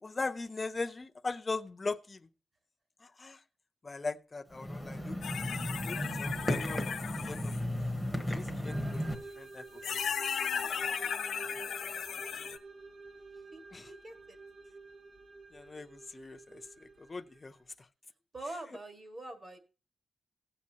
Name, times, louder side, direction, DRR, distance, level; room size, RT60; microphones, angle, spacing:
voice 1, 0.0-2.3 3.0-3.4 3.8-5.2 5.8-7.6 8.3-10.0 13.7-13.9 15.5-17.9, left 3 dB, 25° left, 0.5 m, -40 dB
sound 1, 4.5-9.1, equal, 10° right, 1.1 m, -35 dB
vampire male, 5.2-7.6 9.0-9.1 9.8-12.6, left 7 dB, 70° left, 0.7 m, -36 dB
sound 2, 8.6-17.7, right 3 dB, 55° right, 2.3 m, -50 dB
voice 2, 11.7-12.0 13.5-14.4 18.3-19.6, right 2 dB, 35° right, 1.7 m, -45 dB
17.0 x 7.4 x 2.8 m
wide cardioid pair, 175°, 0 cm